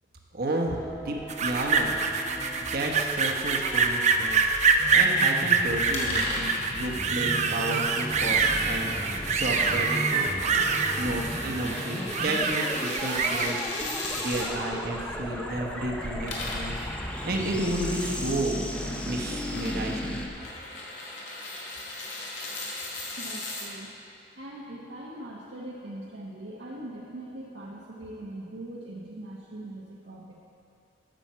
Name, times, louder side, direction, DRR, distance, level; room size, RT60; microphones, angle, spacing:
voice 1, 0.3-0.8 1.0-2.0 2.6-4.5 4.9-10.3 10.7-13.7 14.2-16.9 17.2-18.7 19.0-20.2, right 1 dB, 55° right, 0 dB, 1.1 m, -32 dB
sound 1, 0.8-20.3, equal, 5° left, 0.6 m, -36 dB
sound 2, 1.3-13.5, right 5 dB, 40° right, 0.5 m, -25 dB
sound 3, 5.9-14.5 16.0-23.7, left 2 dB, 75° left, 1.6 m, -38 dB
voice 2, 23.2-23.9 24.3-30.3, right 1 dB, 75° right, -6 dB, 1.1 m, -41 dB
9.0 x 7.1 x 5.6 m, 2.8 s
head